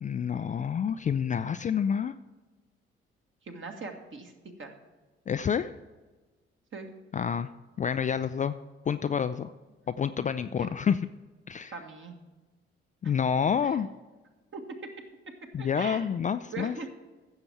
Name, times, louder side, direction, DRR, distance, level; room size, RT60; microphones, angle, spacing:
voice 1, 0.0-2.1 5.3-5.7 7.1-7.5 7.8-8.5 8.9-9.5 9.9-11.1 11.5-11.7 13.0-13.9 15.5-16.8, left 7 dB, 25° left, 11 dB, 0.4 m, -28 dB
voice 2, 3.4-4.3 4.6-4.7 6.7-6.9 10.5-10.7 11.7-12.1 13.0-13.1 13.6-13.8 14.5-14.6 15.6-16.0 16.5-16.9, right 4 dB, 40° right, 3 dB, 1.8 m, -40 dB
15.0 x 7.0 x 4.6 m, 1.3 s
figure-of-eight pair, 40°, 30 cm